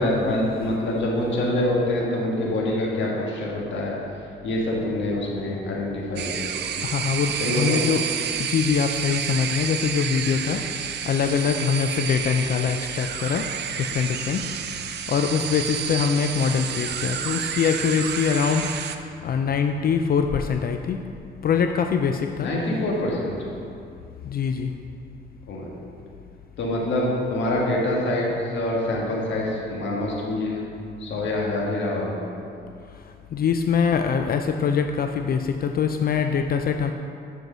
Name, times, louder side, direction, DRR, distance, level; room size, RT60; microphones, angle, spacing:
voice 1, 0.0-4.0 4.4-6.8 7.4-7.8 22.4-23.3 25.5-25.7 26.6-30.6 31.0-32.2, left 1 dB, 70° left, -3 dB, 1.6 m, -25 dB
sound 1, 6.2-19.0, right 8 dB, 60° right, 0.5 m, -30 dB
voice 2, 6.8-8.0 8.4-10.6 11.1-13.5 13.8-14.5 15.1-18.7 19.2-21.0 21.4-22.5 24.2-24.7 33.3-36.9, left 6 dB, 50° left, 6 dB, 0.4 m, -23 dB
7.8 x 4.6 x 6.1 m, 2.5 s
cardioid pair, 90°, 20 cm